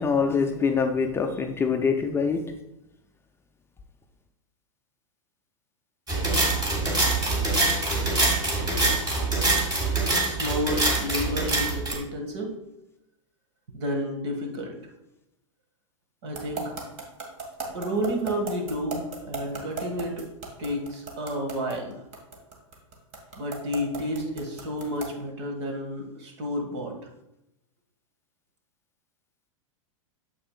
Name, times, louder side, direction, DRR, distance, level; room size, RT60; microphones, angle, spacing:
voice 1, 0.0-2.4, left 5 dB, 15° left, 4 dB, 0.5 m, -24 dB
sound 1, 6.1-12.0, right 2 dB, 20° right, 1.9 m, -24 dB
voice 2, 10.1-12.5 13.7-14.7 16.2-16.7 17.7-20.3 20.6-22.0 23.4-27.1, equal, 55° right, 3 dB, 1.8 m, -31 dB
sound 2, 16.3-25.2, right 5 dB, 40° right, 1.8 m, -35 dB
8.5 x 7.3 x 2.3 m, 0.87 s
figure-of-eight pair, 100°, 17 cm